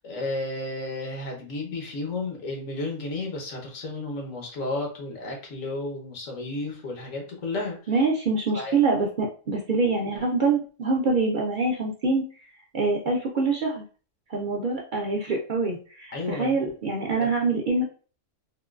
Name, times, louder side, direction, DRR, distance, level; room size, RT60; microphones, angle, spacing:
voice 1, 0.0-7.8 8.5-8.7 16.1-16.6 17.2-17.6, left 2 dB, 90° left, 1 dB, 1.4 m, -32 dB
voice 2, 7.9-12.2 12.7-13.8 14.3-17.8, right 3 dB, 60° right, -1 dB, 0.5 m, -25 dB
3.6 x 2.2 x 2.3 m, 0.39 s
omnidirectional pair, 1.3 m